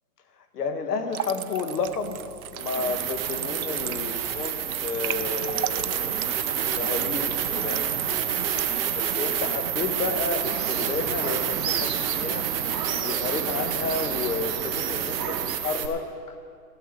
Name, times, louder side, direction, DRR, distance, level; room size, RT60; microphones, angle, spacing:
voice 1, 0.5-2.2 2.5-7.9 9.2-16.4, left 4 dB, 75° left, 7 dB, 1.6 m, -31 dB
sound 1, 1.1-8.8, right 12 dB, 65° right, 0.6 m, -37 dB
sound 2, 1.9-2.0 2.6-15.9, right 8 dB, 40° right, 0.9 m, -28 dB
sound 3, 10.4-15.6, right 8 dB, 90° right, 0.9 m, -34 dB
15.0 x 7.3 x 7.3 m, 2.2 s
hypercardioid pair, 155°, 47 cm